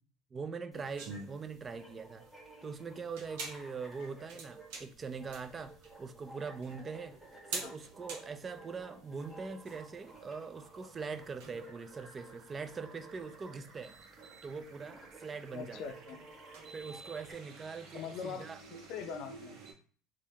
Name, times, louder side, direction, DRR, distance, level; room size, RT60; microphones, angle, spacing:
voice 1, 0.3-2.3 2.6-7.2 7.5-13.9 14.4-15.8 16.7-18.6, right 5 dB, 30° right, 0.4 m, -42 dB
sound 1, 0.7-17.3, right 2 dB, 5° right, 1.5 m, -55 dB
sound 2, 1.0-19.7, right 4 dB, 75° right, 1.1 m, -49 dB
sound 3, 5.0-19.2, right 4 dB, 55° right, 1.1 m, -61 dB
voice 2, 15.5-16.2 17.9-18.5 18.7-19.6, left 6 dB, 65° left, 0.5 m, -42 dB
3.1 x 2.5 x 2.8 m
supercardioid pair, 90°, 0 cm